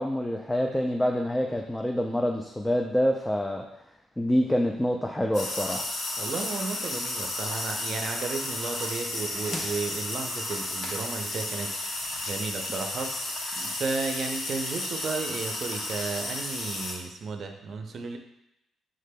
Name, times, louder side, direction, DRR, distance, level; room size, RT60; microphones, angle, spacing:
voice 1, 0.0-3.6 4.2-5.9 9.5-9.7, equal, 10° left, 0 dB, 0.4 m, -26 dB
sound 1, 5.3-16.9, left 2 dB, 65° left, 1.0 m, -33 dB
voice 2, 6.2-11.7 12.3-18.2, right 4 dB, 55° right, 4 dB, 0.5 m, -34 dB
5.0 x 3.7 x 2.2 m, 0.84 s
cardioid pair, 90°, 0 cm